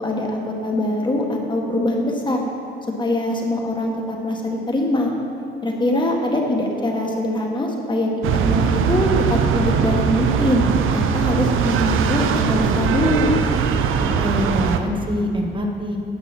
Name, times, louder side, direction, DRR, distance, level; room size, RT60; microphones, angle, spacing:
voice 1, 0.0-2.4 3.0-5.1 5.6-8.1 8.4-10.6 10.9-13.3, left 1 dB, 20° left, 0 dB, 1.7 m, -23 dB
sound 1, 8.2-14.8, right 6 dB, 85° right, 0.6 m, -20 dB
voice 2, 14.0-16.0, equal, 25° right, 2 dB, 1.1 m, -25 dB
9.8 x 6.0 x 6.1 m, 2.7 s
cardioid pair, 80°, 20 cm